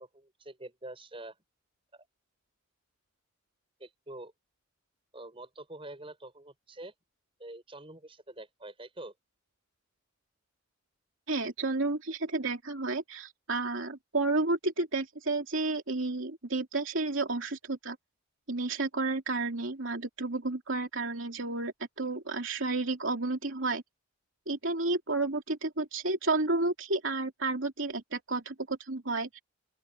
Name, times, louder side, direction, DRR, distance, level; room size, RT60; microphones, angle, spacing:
voice 1, 0.0-1.4 1.9-2.1 3.8-4.3 5.1-6.9 7.4-9.1, right 1 dB, 25° right, 7.5 m, -46 dB
voice 2, 11.3-18.0 18.5-23.8 24.5-29.4, right 3 dB, 65° right, 3.1 m, -31 dB
open air
head